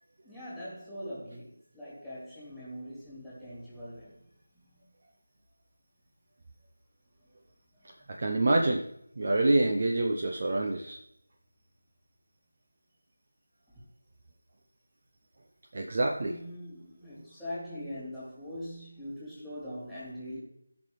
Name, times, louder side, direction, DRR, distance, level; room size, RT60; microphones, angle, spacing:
voice 1, 0.2-4.2 4.5-4.8 7.7-8.2 16.2-20.4, equal, ahead, -10 dB, 3.5 m, -42 dB
voice 2, 8.1-8.8 9.2-11.0 15.7-16.4, right 2 dB, 40° right, 2 dB, 0.8 m, -26 dB
16.5 x 6.1 x 3.3 m, 0.74 s
figure-of-eight pair, 165°, 0 cm